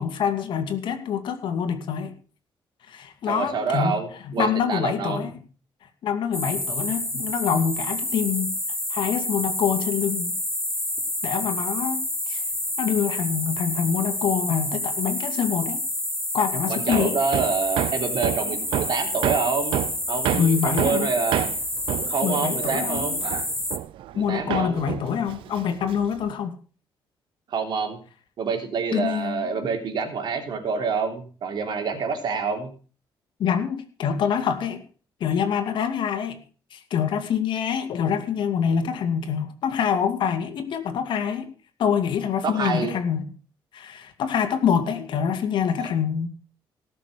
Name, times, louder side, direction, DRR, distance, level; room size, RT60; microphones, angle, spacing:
voice 1, 0.0-2.1 2.9-4.0 4.2-5.3 6.0-8.5 8.9-10.3 11.2-12.4 12.8-15.8 16.3-17.2 20.3-21.1 22.2-23.1 24.1-26.6 28.9-29.5 33.4-34.8 35.2-36.4 36.7-41.5 41.8-43.2 43.7-46.3, left 7 dB, 70° left, 7 dB, 2.4 m, -25 dB
voice 2, 3.3-5.3 16.7-21.5 22.1-23.2 24.1-24.8 27.5-28.0 28.4-32.7 42.4-42.9 45.8-45.9, right 5 dB, 60° right, 4 dB, 3.4 m, -27 dB
sound 1, 6.3-23.8, left 1 dB, 5° left, 1.7 m, -29 dB
Hammer, 16.9-24.2 24.5-26.3, right 13 dB, 80° right, 0.6 m, -29 dB
18.0 x 6.8 x 6.7 m, 0.39 s
cardioid pair, 125°, 9 cm